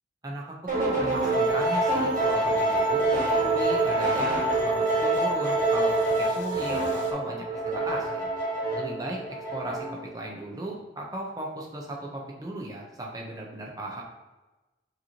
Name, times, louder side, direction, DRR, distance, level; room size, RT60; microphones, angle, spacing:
voice 1, 0.7-3.0 3.4-5.9 6.2-8.3 8.8-9.2 9.5-9.9 10.1-14.0, right 1 dB, 20° right, -1 dB, 0.6 m, -36 dB
sound 1, 0.7-10.1, right 2 dB, 45° right, 1.4 m, -26 dB
sound 2, 1.1-7.1, right 3 dB, 85° left, 0.5 m, -38 dB
5.1 x 3.0 x 2.8 m, 1.1 s
head